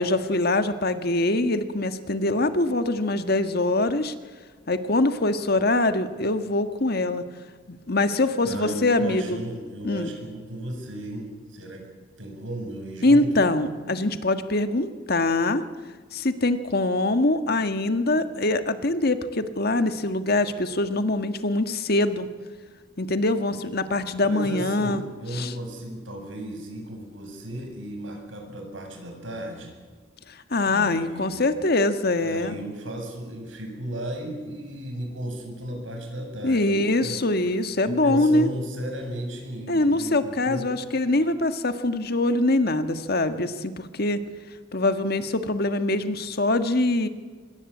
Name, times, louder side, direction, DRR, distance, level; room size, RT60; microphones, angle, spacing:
voice 1, 0.0-4.1 4.7-7.3 7.7-9.4 9.8-10.1 13.0-15.6 16.1-22.3 23.0-25.0 25.3-25.5 30.5-32.5 36.4-38.5 39.7-44.2 44.7-47.1, left 2 dB, 55° left, 9 dB, 1.7 m, -23 dB
voice 2, 8.1-11.9 12.2-13.3 24.2-29.7 30.7-31.4 32.2-37.2 37.8-40.7, right 1 dB, 90° right, 3 dB, 7.9 m, -35 dB
25.5 x 21.5 x 8.5 m, 1.5 s
head